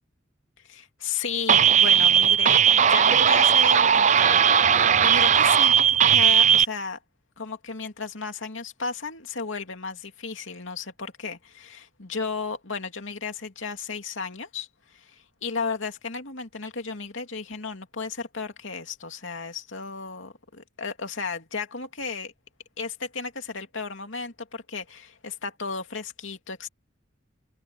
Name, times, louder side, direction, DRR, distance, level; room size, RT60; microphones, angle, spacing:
voice 1, 0.7-7.0 7.4-22.3 22.8-26.7, left 5 dB, 75° left, 2.6 m, -34 dB
sound 1, 1.5-6.6, right 8 dB, 35° right, 0.5 m, -18 dB
head